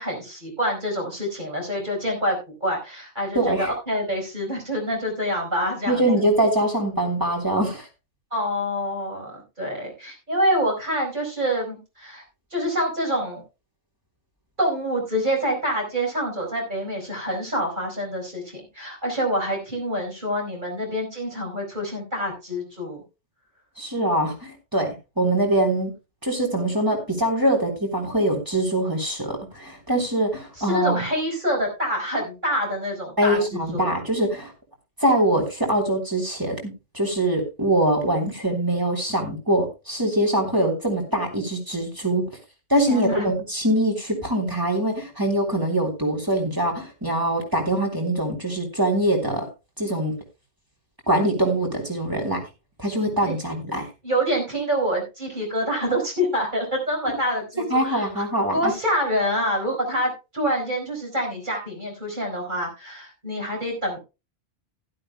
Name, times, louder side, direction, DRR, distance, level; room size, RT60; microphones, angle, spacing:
voice 1, 0.0-6.1 8.3-12.2 12.5-13.4 14.6-23.0 30.6-33.9 42.9-43.3 53.2-53.3 54.0-58.2 58.5-64.0, equal, 40° right, 0 dB, 5.0 m, -26 dB
voice 2, 3.3-3.7 5.9-7.9 23.8-25.9 26.2-31.0 33.2-34.5 35.0-42.3 42.7-49.5 49.8-50.1 51.1-52.4 52.8-53.8 57.7-58.7, right 1 dB, 15° right, 1 dB, 3.5 m, -23 dB
15.0 x 12.0 x 2.2 m, 0.27 s
omnidirectional pair, 1.2 m